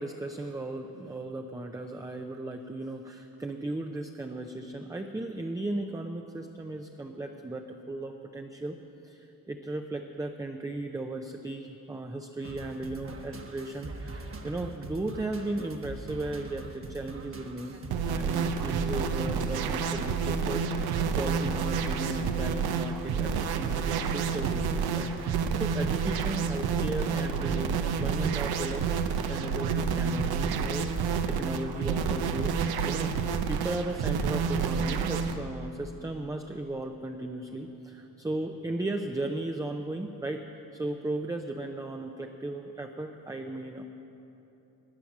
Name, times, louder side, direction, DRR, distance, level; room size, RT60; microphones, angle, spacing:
voice 1, 0.0-8.8 9.0-17.7 18.1-28.8 29.1-32.5 32.8-40.4 40.7-43.8, right 2 dB, 10° right, 4 dB, 0.6 m, -36 dB
sound 1, 12.4-18.7, right 2 dB, 35° right, 1.3 m, -42 dB
sound 2, 17.9-35.4, right 6 dB, 80° right, 0.8 m, -29 dB
12.5 x 9.2 x 7.3 m, 3.0 s
cardioid pair, 90°, 37 cm